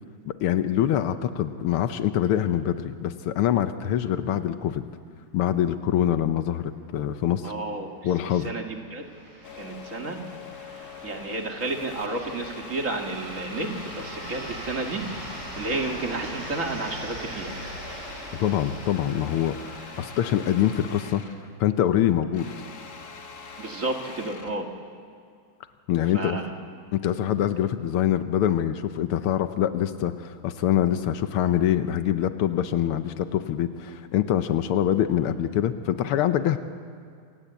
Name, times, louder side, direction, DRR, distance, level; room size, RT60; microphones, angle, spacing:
voice 1, 0.3-4.8 5.3-7.5 8.0-8.5 18.4-19.6 20.0-21.2 21.6-22.5 25.9-26.4 26.9-36.6, left 11 dB, 85° left, 10 dB, 1.7 m, -24 dB
sound 1, 7.0-7.1 7.4-7.5 8.3-21.1, right 1 dB, 85° right, 6.0 m, -41 dB
voice 2, 7.4-7.9 8.4-9.1 9.5-10.2 11.0-15.1 15.6-17.5 23.6-24.7 26.1-26.5, right 2 dB, 35° right, 3 dB, 2.4 m, -31 dB
sound 2, 9.4-21.5 21.8-24.6, left 5 dB, 45° left, 2.0 m, -43 dB
27.5 x 17.5 x 8.2 m, 2.3 s
omnidirectional pair, 2.4 m